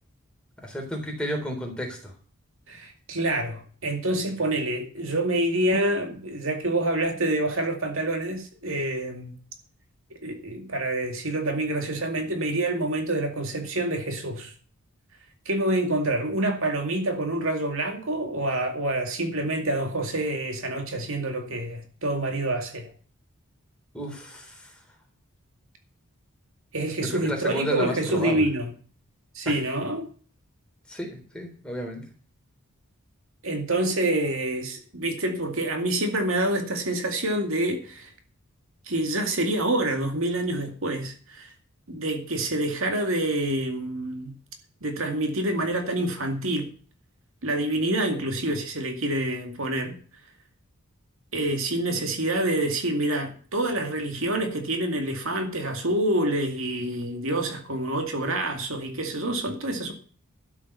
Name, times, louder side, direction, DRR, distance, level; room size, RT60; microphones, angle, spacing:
voice 1, 0.6-2.0 23.9-24.5 27.2-28.4 30.9-32.0, equal, 5° left, 3.7 m, -31 dB
voice 2, 2.7-9.3 10.2-14.5 15.5-22.9 26.7-28.7 29.3-30.1 33.4-38.1 38.9-41.5 41.9-44.3 44.8-46.7 47.4-50.0 51.3-59.9, right 1 dB, 65° right, 2.3 m, -27 dB
12.5 x 7.4 x 6.8 m
head